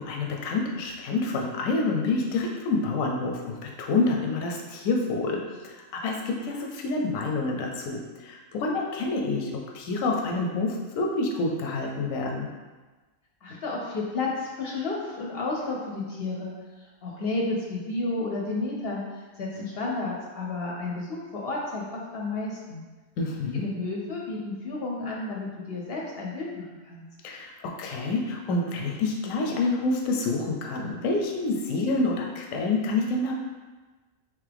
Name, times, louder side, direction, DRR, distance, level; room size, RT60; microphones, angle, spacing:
voice 1, 0.0-12.5 23.2-23.7 27.2-33.3, left 3 dB, 85° left, 1 dB, 1.0 m, -28 dB
voice 2, 13.4-22.8 23.5-27.0, left 3 dB, 60° left, -2 dB, 0.7 m, -32 dB
3.7 x 3.0 x 3.3 m, 1.3 s
omnidirectional pair, 1.3 m